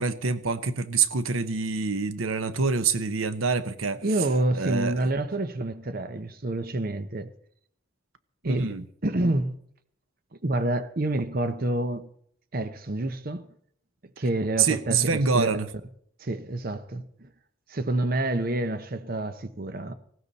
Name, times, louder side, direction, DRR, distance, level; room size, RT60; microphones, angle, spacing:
voice 1, 0.0-4.0 4.5-4.9 8.4-8.8 14.6-15.7, right 5 dB, 85° right, 1.0 m, -26 dB
voice 2, 4.0-7.3 8.4-8.8 9.0-9.5 10.4-12.1 12.5-13.5 14.2-15.5 16.2-17.3 17.7-19.9, right 2 dB, 45° right, 0.9 m, -28 dB
19.0 x 17.0 x 4.1 m
head